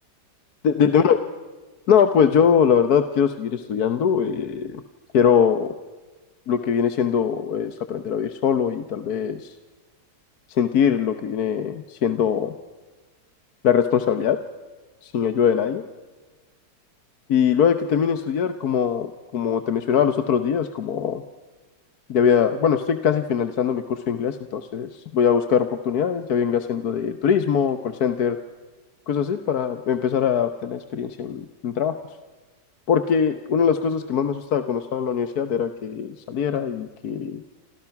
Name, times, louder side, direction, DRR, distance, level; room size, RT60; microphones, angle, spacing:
voice 1, 0.6-1.2 1.9-4.8 5.1-5.7 6.5-9.5 10.5-12.5 13.6-14.4 15.0-15.8 17.3-21.2 22.1-28.4 29.1-32.0 32.9-37.4, left 7 dB, 60° left, 9 dB, 1.5 m, -22 dB
29.5 x 26.5 x 5.9 m, 1.3 s
omnidirectional pair, 1.9 m